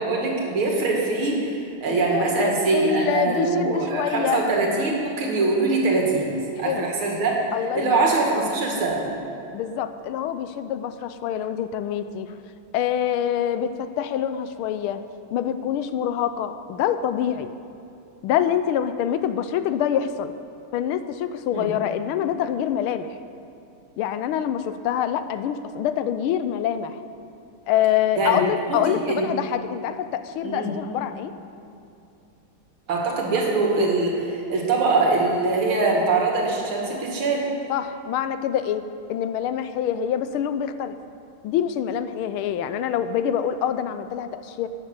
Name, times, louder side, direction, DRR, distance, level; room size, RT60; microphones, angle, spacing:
voice 1, 0.0-7.4 7.7-9.1 21.5-21.7 28.2-28.4 28.7-29.3 30.4-30.7 32.9-37.5, right 3 dB, 75° right, -1 dB, 2.8 m, -23 dB
voice 2, 1.9-4.4 6.6-6.9 7.5-8.3 9.5-12.3 12.7-15.0 15.3-17.5 18.2-20.3 20.7-23.2 24.0-27.0 27.7-31.3 37.7-38.8 39.1-41.0 41.4-44.7, left 9 dB, 80° left, 11 dB, 1.5 m, -25 dB
12.0 x 9.0 x 7.2 m, 2.7 s
omnidirectional pair, 2.3 m